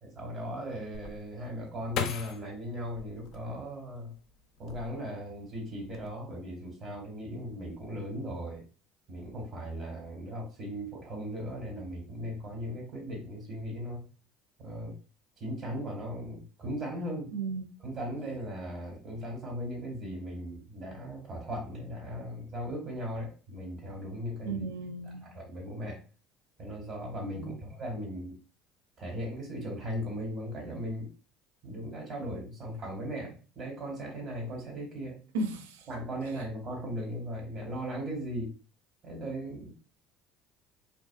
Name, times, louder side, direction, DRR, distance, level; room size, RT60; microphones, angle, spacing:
voice 1, 0.0-4.1 4.6-8.6 9.1-14.1 14.6-14.9 15.4-17.3 17.8-24.6 25.2-26.0 26.6-28.4 29.0-31.1 31.6-35.2 35.9-38.5 39.0-39.9, equal, 40° right, 1.5 m, -38 dB
sound 1, 0.9-4.0 4.5-5.3 5.6-6.1, left 6 dB, 60° left, 0.4 m, -38 dB
voice 2, 17.3-17.7 24.5-25.3 27.3-27.6 35.3-35.9, right 3 dB, 85° right, 0.4 m, -35 dB
2.4 x 2.3 x 2.3 m
hypercardioid pair, 75°, 0 cm